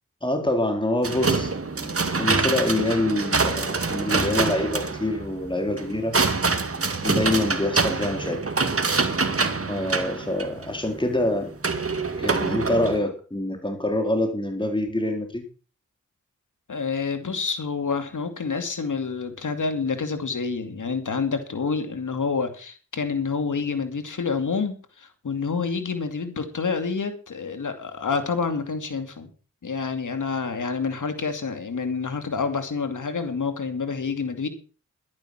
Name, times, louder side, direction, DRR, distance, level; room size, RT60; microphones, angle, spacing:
voice 1, 0.2-1.5 1.8-6.2 7.0-8.4 9.7-11.5 12.2-15.4, left 1 dB, 15° left, 4 dB, 3.8 m, -25 dB
sound 1, 1.0-13.0, right 4 dB, 45° right, 2.0 m, -25 dB
voice 2, 16.7-29.3 29.6-34.5, left 5 dB, 75° left, 8 dB, 2.5 m, -28 dB
12.0 x 10.5 x 6.1 m, 0.37 s
cardioid pair, 40°, 31 cm